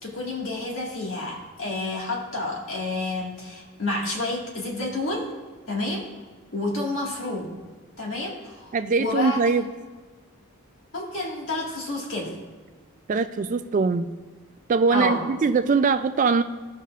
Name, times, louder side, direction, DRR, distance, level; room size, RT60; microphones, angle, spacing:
voice 1, 0.0-5.4 5.7-6.1 6.5-7.5 8.0-9.4 10.9-12.3 14.9-15.3, left 2 dB, 65° left, -2 dB, 1.9 m, -29 dB
voice 2, 8.7-9.6 13.1-14.1 14.7-16.4, right 4 dB, 35° right, 9 dB, 0.3 m, -22 dB
15.5 x 5.4 x 2.5 m, 1.4 s
head